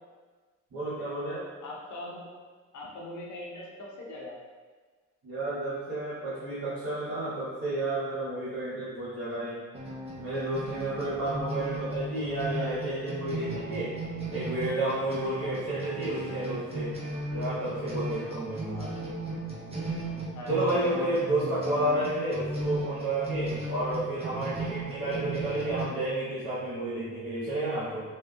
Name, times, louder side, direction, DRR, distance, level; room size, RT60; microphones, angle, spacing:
voice 1, 0.7-1.5 5.2-9.6 10.2-14.0 14.3-16.9 17.3-18.8 20.5-28.0, right 1 dB, 45° right, -12 dB, 0.9 m, -31 dB
voice 2, 1.6-2.2 2.7-4.3 15.4-15.5 18.7-18.9 20.3-20.8, left 2 dB, 55° left, -2 dB, 0.7 m, -41 dB
sound 1, 9.7-25.8, right 1 dB, 15° right, 0.6 m, -36 dB
2.6 x 2.0 x 2.3 m, 1.4 s
hypercardioid pair, 50°, 35 cm